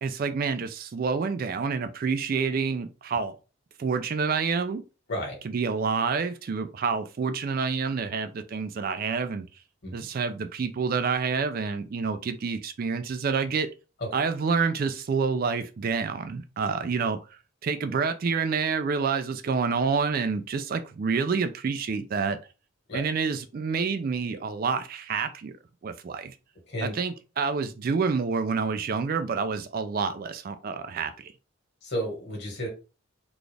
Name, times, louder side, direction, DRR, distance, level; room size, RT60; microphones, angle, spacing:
voice 1, 0.0-3.4 3.8-4.8 5.4-9.4 9.9-13.7 14.1-22.4 22.9-25.5 25.8-26.4 26.8-31.3, right 5 dB, 40° right, 0.3 m, -28 dB
voice 2, 5.1-5.4 9.8-9.9 14.0-14.1 22.9-23.0 26.7-26.9 31.8-32.7, equal, 50° left, 1.6 m, -32 dB
4.0 x 2.4 x 3.3 m
head